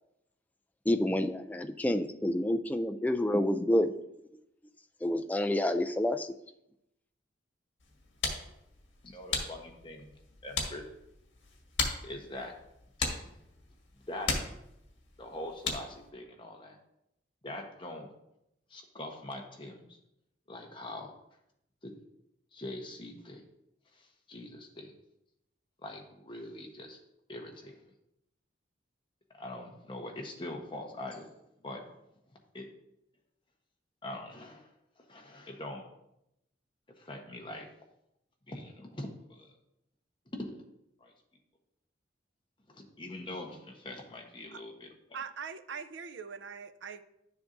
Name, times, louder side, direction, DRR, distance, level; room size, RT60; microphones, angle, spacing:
voice 1, 0.9-3.9 5.0-6.4, left 1 dB, 10° left, 8 dB, 0.3 m, -28 dB
sound 1, 7.8-16.1, left 4 dB, 75° left, 1.6 m, -38 dB
voice 2, 9.0-10.1 10.4-10.8 12.0-12.5 13.0-13.2 14.1-14.3 15.2-16.8 17.4-18.1 18.7-19.8 20.5-21.1 21.8-21.9 22.5-23.4 24.3-24.9 25.8-27.0 27.3-27.8 29.4-31.3 31.6-31.8 32.5-32.7 34.0-34.7 35.1-35.9 37.0-37.7 38.5-39.5 40.3-40.6 41.0-41.1 42.7-44.9, left 1 dB, 25° left, 1 dB, 1.0 m, -43 dB
voice 3, 45.1-47.0, right 6 dB, 80° right, 12 dB, 0.5 m, -42 dB
11.0 x 6.9 x 2.6 m, 0.83 s
head